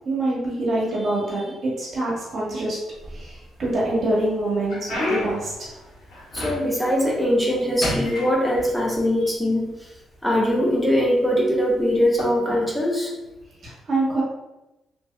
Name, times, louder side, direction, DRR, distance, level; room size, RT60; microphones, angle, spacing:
voice 1, 0.0-2.8 3.1-5.7 13.6-14.2, right 2 dB, 50° right, -5 dB, 1.3 m, -25 dB
sound 1, 2.9-3.7 4.2-6.9 7.3-7.6 7.8-9.0 9.9-10.0 10.7-10.9 12.0-12.2, left 1 dB, 70° left, 1.2 m, -30 dB
voice 2, 6.3-9.9 10.2-13.1, equal, 10° left, -3 dB, 0.7 m, -21 dB
3.2 x 2.6 x 2.2 m, 0.96 s
cardioid pair, 90°, 0 cm